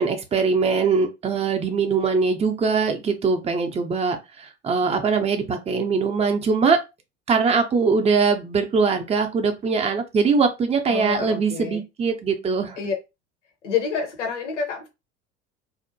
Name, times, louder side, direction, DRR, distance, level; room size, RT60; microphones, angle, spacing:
voice 1, 0.0-6.8 7.3-12.8, right 5 dB, 20° right, 0.5 m, -22 dB
voice 2, 10.9-11.8 12.8-13.0 13.6-14.9, left 6 dB, 75° left, 0.8 m, -28 dB
2.7 x 2.1 x 2.6 m
figure-of-eight pair, 65°, 36 cm